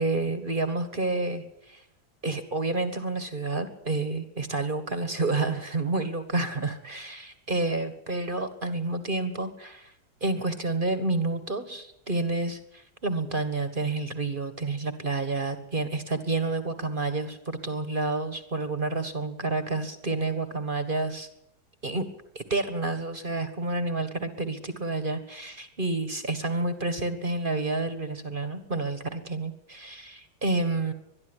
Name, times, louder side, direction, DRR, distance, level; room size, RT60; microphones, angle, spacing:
voice 1, 0.0-1.8 2.2-9.9 10.2-21.3 21.8-22.1 22.3-30.9, right 2 dB, 30° right, 9 dB, 1.6 m, -29 dB
22.0 x 12.0 x 9.9 m, 0.80 s
omnidirectional pair, 1.8 m